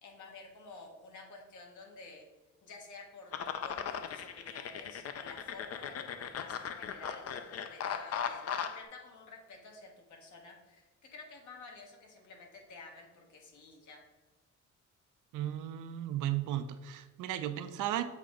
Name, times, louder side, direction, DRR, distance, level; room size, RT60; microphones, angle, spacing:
voice 1, 0.0-2.2 2.6-14.0, left 3 dB, 75° left, 1 dB, 1.5 m, -51 dB
sound 1, 3.3-8.8, left 8 dB, 55° left, 0.6 m, -38 dB
voice 2, 15.3-18.0, right 12 dB, 85° right, 9 dB, 0.6 m, -35 dB
7.3 x 4.2 x 3.7 m, 1.2 s
cardioid pair, 90°, 30 cm